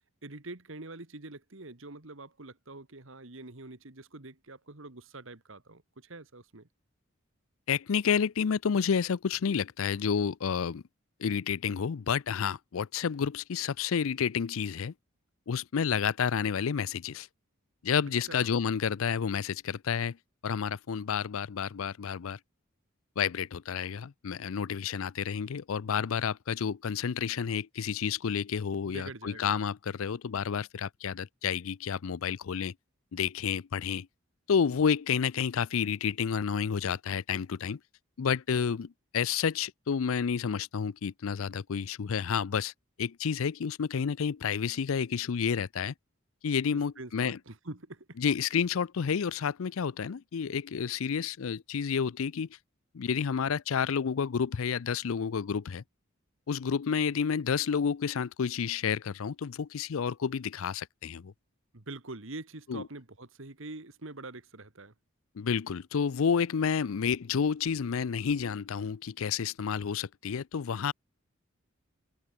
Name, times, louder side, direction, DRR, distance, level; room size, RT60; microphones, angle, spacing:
voice 1, 0.2-6.7 18.3-18.5 28.8-29.5 46.7-48.2 61.7-64.9, right 2 dB, 70° right, 1.9 m, -45 dB
voice 2, 7.7-10.8 11.2-14.9 15.5-17.3 17.8-20.2 20.4-22.4 23.2-32.7 33.1-34.1 34.5-37.8 38.2-42.7 43.0-45.9 46.4-47.4 48.2-52.5 52.9-55.8 56.5-61.3 62.7-62.8 65.4-70.9, left 6 dB, 75° left, 0.5 m, -30 dB
head